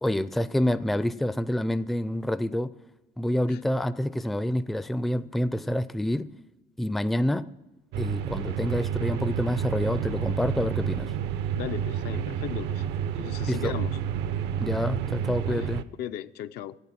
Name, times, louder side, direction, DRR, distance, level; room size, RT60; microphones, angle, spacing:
voice 1, 0.0-2.7 3.2-6.3 6.8-7.5 8.0-11.1 13.4-13.7 14.6-15.9, left 1 dB, ahead, 0.4 m, -27 dB
sound 1, 7.9-15.8, right 8 dB, 85° right, 0.6 m, -30 dB
voice 2, 11.5-12.8 13.1-14.0 15.5-15.7 16.0-16.8, left 11 dB, 75° left, 0.5 m, -36 dB
12.5 x 8.9 x 5.8 m
cardioid pair, 110°, 17 cm